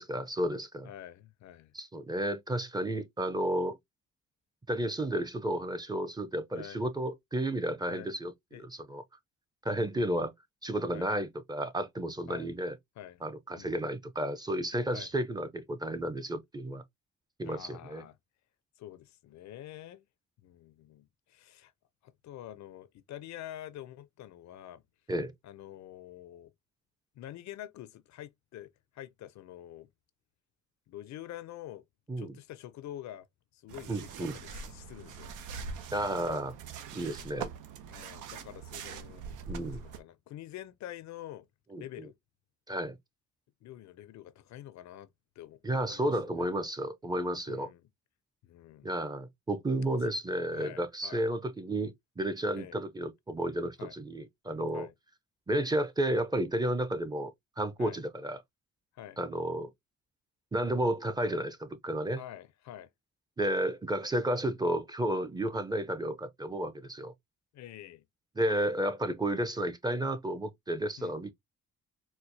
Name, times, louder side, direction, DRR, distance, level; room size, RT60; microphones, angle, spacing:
voice 1, 0.0-0.9 1.7-3.8 4.7-9.0 9.6-10.3 10.6-12.8 13.2-16.8 17.4-18.0 25.1-25.3 32.1-32.4 33.9-34.4 35.9-36.5 36.9-37.5 39.5-39.8 41.7-41.8 42.7-43.0 45.6-47.7 48.8-54.9 55.5-58.4 59.2-59.7 60.5-62.2 63.4-67.1 68.4-71.3, right 1 dB, 15° right, 0.5 m, -32 dB
voice 2, 0.8-1.7 6.5-6.8 7.9-8.1 8.5-8.7 9.7-10.2 10.9-11.1 12.3-12.5 13.0-13.2 13.6-13.8 14.9-15.1 17.4-18.2 18.8-20.0 20.4-21.7 22.0-24.8 25.4-26.5 27.2-29.9 30.9-31.8 32.2-33.3 33.5-35.4 37.9-41.5 41.8-42.1 43.6-45.1 45.4-46.5 47.5-47.8 48.4-48.9 49.9-50.1 50.5-51.2 52.5-52.8 53.8-53.9 54.7-54.9 57.8-58.0 59.0-59.2 62.2-62.9 67.5-68.1 71.0-71.2, left 12 dB, 65° left, 0.5 m, -47 dB
sound 1, 33.7-40.0, right 5 dB, 90° right, 0.7 m, -43 dB
4.3 x 2.1 x 2.6 m
cardioid pair, 90°, 30 cm